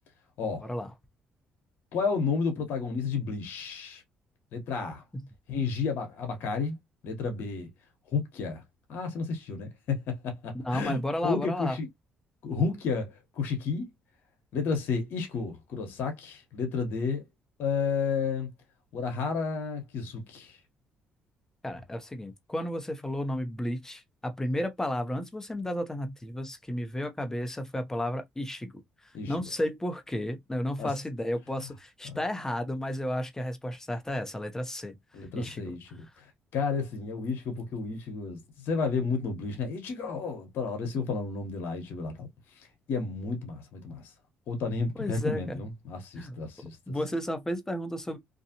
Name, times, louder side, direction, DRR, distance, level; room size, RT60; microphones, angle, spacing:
voice 1, 1.9-4.0 4.5-5.0 5.5-6.8 7.0-7.7 8.1-8.6 8.9-11.9 12.4-13.9 14.5-17.2 17.6-18.5 18.9-20.6 29.1-29.3 30.8-30.9 32.0-32.2 35.1-42.3 42.9-44.1 44.5-47.0, left 5 dB, 70° left, 1.0 m, -32 dB
voice 2, 10.6-11.8 21.6-28.7 29.0-34.9 35.3-35.7 45.0-45.6 46.2-46.4 46.9-48.2, left 1 dB, 15° left, 0.8 m, -33 dB
2.6 x 2.3 x 2.8 m
supercardioid pair, 70°, 4 cm